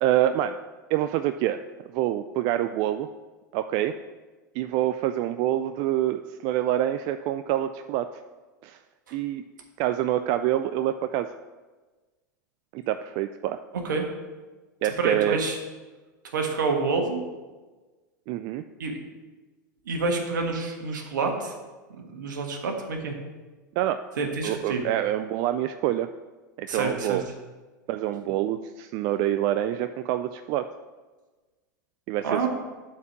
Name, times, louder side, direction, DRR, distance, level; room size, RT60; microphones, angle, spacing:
voice 1, 0.0-0.6 0.9-1.6 1.9-3.1 3.5-4.0 4.5-8.2 8.6-8.8 9.1-9.4 9.8-11.3 12.7-13.6 14.8-15.4 18.3-18.6 23.8-24.0 24.4-26.1 26.6-27.2 27.9-30.7 32.1-32.5, right 12 dB, 50° right, 10 dB, 0.4 m, -26 dB
voice 2, 14.8-15.6 16.3-17.2 18.8-19.0 19.8-21.5 22.0-23.2 24.2-24.8 26.7-27.2 32.2-32.5, right 4 dB, 75° right, 3 dB, 1.5 m, -28 dB
8.2 x 4.6 x 7.3 m, 1.3 s
hypercardioid pair, 95°, 10 cm